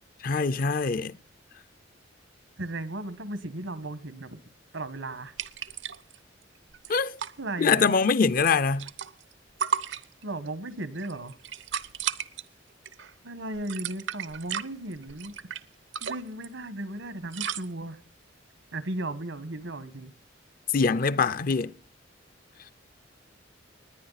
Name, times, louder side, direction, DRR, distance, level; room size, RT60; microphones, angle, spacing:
voice 1, 0.2-1.1 6.9-7.2 7.6-8.9 20.7-21.7, left 5 dB, 45° left, 0.5 m, -23 dB
voice 2, 2.6-4.4 4.7-5.3 7.4-7.9 10.2-11.4 13.2-15.3 16.0-18.0 18.7-20.1, right 1 dB, 85° right, 1.4 m, -36 dB
sound 1, 5.4-6.2 6.4-6.5 6.7-7.3 8.4-9.3 9.6-10.5 11.0-12.4 12.9-13.1 13.5-15.6 15.9-16.5 17.3-17.7, right 7 dB, 70° right, 0.7 m, -33 dB
20.5 x 9.7 x 4.1 m
head